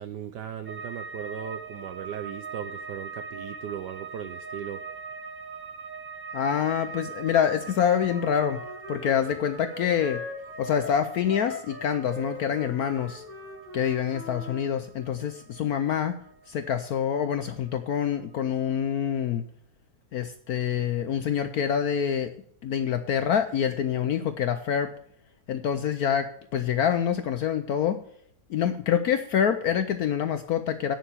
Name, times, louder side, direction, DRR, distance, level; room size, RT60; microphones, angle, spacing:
voice 1, 0.0-4.8, right 9 dB, 70° right, 8 dB, 1.2 m, -37 dB
sound 1, 0.7-17.8 18.1-18.8, right 5 dB, 50° right, 0.5 m, -42 dB
voice 2, 6.3-8.6 8.9-10.2 10.6-13.2 13.7-16.2 16.5-19.5 20.1-22.3 22.6-24.9 25.5-28.0 28.5-31.0, left 8 dB, 65° left, 9 dB, 1.0 m, -26 dB
Wind instrument woodwind instrument, 8.0-14.6, left 2 dB, 5° left, 2.3 m, -40 dB
9.0 x 7.0 x 7.0 m, 0.64 s
omnidirectional pair, 2.0 m